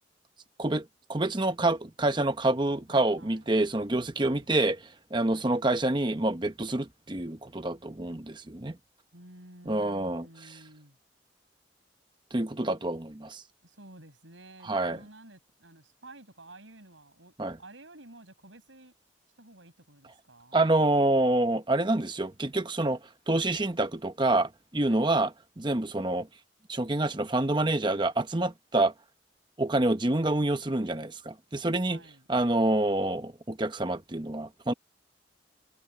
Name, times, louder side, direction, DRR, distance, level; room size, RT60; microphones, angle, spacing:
voice 1, 1.1-4.8 5.1-8.7 9.7-10.3 12.3-13.4 14.7-15.0 17.4-17.6 20.5-23.0 23.3-25.3 25.6-26.3 26.7-28.9 29.6-32.0 32.3-34.7, right 2 dB, 25° right, 1.0 m, -27 dB
voice 2, 2.9-3.6 4.2-4.5 5.3-5.6 9.1-11.0 13.6-18.9 19.4-20.7 24.8-25.2 31.9-32.3, right 2 dB, 85° right, 7.3 m, -52 dB
head